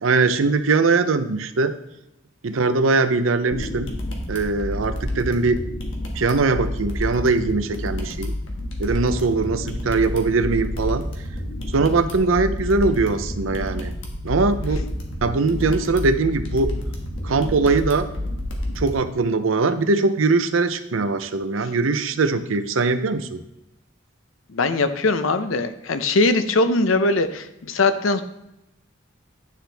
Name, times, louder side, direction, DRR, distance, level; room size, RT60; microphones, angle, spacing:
voice 1, 0.0-1.7 2.4-3.9 4.3-5.6 6.1-8.3 8.8-11.0 11.7-13.9 14.2-14.8 15.2-16.7 17.2-18.1 18.8-23.4, right 3 dB, 90° right, 10 dB, 0.6 m, -21 dB
sound 1, 3.5-18.9, left 1 dB, 65° left, 1.5 m, -29 dB
voice 2, 24.5-28.2, left 3 dB, 90° left, 10 dB, 0.6 m, -21 dB
10.0 x 6.0 x 3.4 m, 0.87 s
head